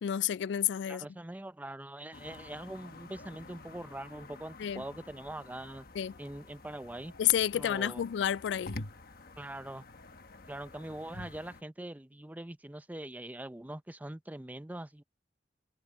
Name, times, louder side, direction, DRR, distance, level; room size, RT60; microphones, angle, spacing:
voice 1, 0.0-1.1 4.6-4.8 6.0-6.1 7.2-8.8, left 10 dB, 85° left, 0.3 m, -30 dB
voice 2, 0.9-5.9 6.2-7.1 7.5-8.0 9.4-9.8 10.5-15.0, right 1 dB, 10° right, 0.6 m, -43 dB
sound 1, 2.1-11.6, left 2 dB, 60° left, 1.2 m, -49 dB
head